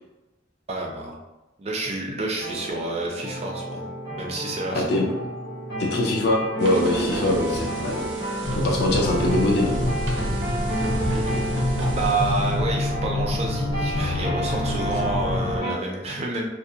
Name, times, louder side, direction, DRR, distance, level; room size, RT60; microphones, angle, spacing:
voice 1, 0.7-1.2 1.6-3.9 4.2-5.0 12.0-16.5, right 2 dB, 35° right, -1 dB, 0.4 m, -29 dB
sound 1, 2.4-15.7, right 1 dB, 85° left, 1.4 m, -31 dB
voice 2, 4.7-5.1 5.8-8.0 8.6-9.9, left 1 dB, 60° left, 0 dB, 0.5 m, -23 dB
sound 2, 6.6-12.5, right 2 dB, 90° right, 0.5 m, -35 dB
sound 3, 8.4-15.6, left 1 dB, 15° left, 0.6 m, -27 dB
2.5 x 2.0 x 2.7 m, 1.0 s
head